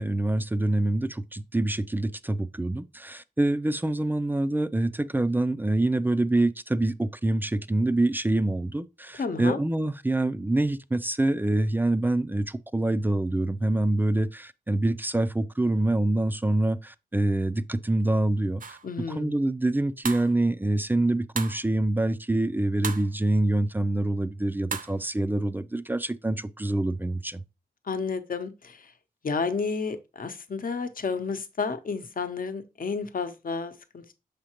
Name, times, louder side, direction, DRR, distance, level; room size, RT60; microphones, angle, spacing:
voice 1, 0.0-18.8 19.1-27.4, right 2 dB, 10° right, 0.3 m, -26 dB
voice 2, 9.2-9.6 18.8-19.3 27.9-28.8 29.2-34.1, left 4 dB, 60° left, 0.8 m, -31 dB
sound 1, 18.6-18.9 20.0-20.3 21.4-21.7 22.8-23.1 24.7-25.0, right 5 dB, 55° right, 0.6 m, -34 dB
6.5 x 5.1 x 2.9 m
wide cardioid pair, 90°, 17 cm